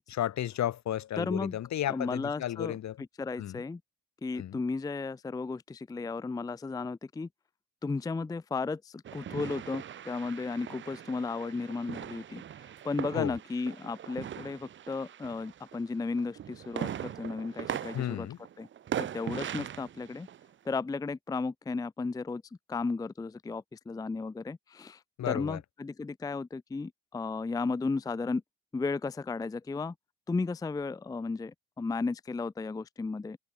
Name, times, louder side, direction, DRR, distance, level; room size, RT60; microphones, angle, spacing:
voice 1, 0.0-3.0 3.4-3.6 4.4-4.6 13.1-13.4 17.9-18.4 25.2-25.6, left 12 dB, 65° left, 1.4 m, -33 dB
voice 2, 1.2-1.6 1.9-2.8 3.2-3.8 4.2-7.3 7.8-12.4 12.8-18.3 18.6-18.7 19.0-20.3 20.7-22.4 22.7-25.0 25.3-28.4 28.7-29.9 30.3-33.4, left 4 dB, 10° left, 0.5 m, -34 dB
sound 1, 9.0-15.8 16.2-20.5, right 10 dB, 40° right, 0.5 m, -40 dB
cardioid pair, 90°, 30 cm